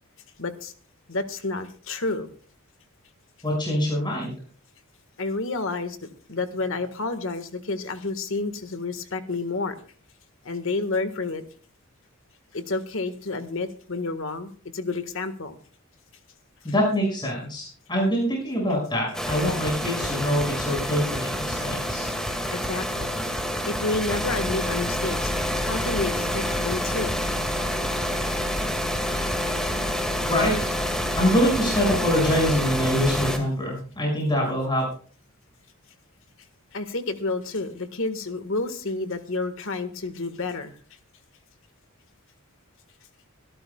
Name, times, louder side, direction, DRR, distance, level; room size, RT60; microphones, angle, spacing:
voice 1, 0.4-0.7 1.1-2.3 5.2-9.8 10.4-11.4 12.5-15.6 21.8-21.9 22.5-23.1 23.7-25.3 25.6-27.2 29.2-29.3 29.6-29.7 30.9-31.0 36.7-40.8, left 3 dB, 65° left, 10 dB, 1.6 m, -30 dB
voice 2, 3.4-4.3 16.6-22.1 30.3-30.8 31.2-34.9, equal, 20° left, -3 dB, 6.0 m, -24 dB
sound 1, 19.1-33.4, equal, 5° left, 2.0 m, -27 dB
24.5 x 13.0 x 2.3 m, 0.43 s
head